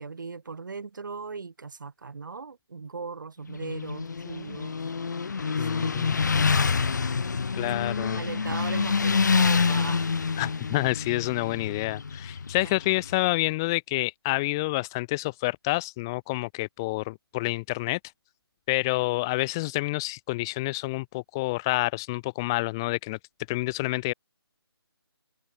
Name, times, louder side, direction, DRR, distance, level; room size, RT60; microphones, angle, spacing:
voice 1, 0.0-4.7 5.5-6.4 7.1-7.5 8.0-10.0 12.6-12.7, right 4 dB, 45° right, 4.4 m, -39 dB
Motorcycle, 3.5-13.3, left 5 dB, 45° left, 1.4 m, -27 dB
voice 2, 5.6-6.1 7.5-8.2 10.4-18.0 18.7-23.2 23.5-24.1, left 22 dB, 10° left, 0.6 m, -28 dB
figure-of-eight pair, 150°, 14 cm